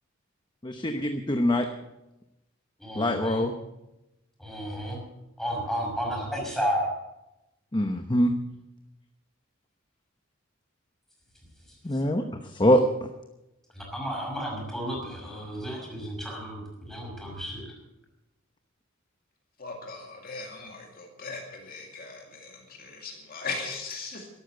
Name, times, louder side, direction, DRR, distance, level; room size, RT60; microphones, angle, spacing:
voice 1, 0.6-1.6 3.0-3.5 7.7-8.3 11.8-12.2 12.6-12.8, equal, 25° left, 6 dB, 0.9 m, -23 dB
voice 2, 2.8-3.5 4.4-5.0 5.4-6.9 11.9-12.0 13.7-17.7, equal, ahead, -1 dB, 5.9 m, -32 dB
voice 3, 19.6-24.3, left 4 dB, 45° left, 2 dB, 2.2 m, -38 dB
13.0 x 12.0 x 7.8 m, 0.93 s
head